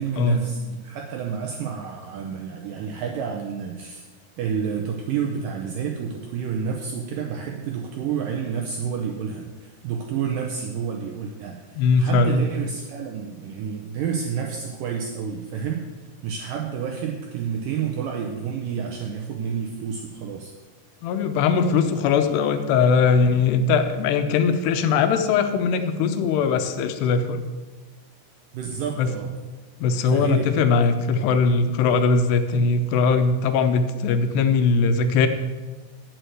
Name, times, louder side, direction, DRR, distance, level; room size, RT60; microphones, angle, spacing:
voice 1, 0.0-4.1 4.4-20.5 28.5-29.3 30.1-30.8, right 7 dB, 80° right, 2 dB, 2.0 m, -29 dB
voice 2, 11.8-12.4 21.0-27.4 29.0-29.1 29.8-35.3, left 5 dB, 80° left, 8 dB, 2.8 m, -20 dB
8.5 x 8.1 x 7.8 m, 1.3 s
omnidirectional pair, 4.9 m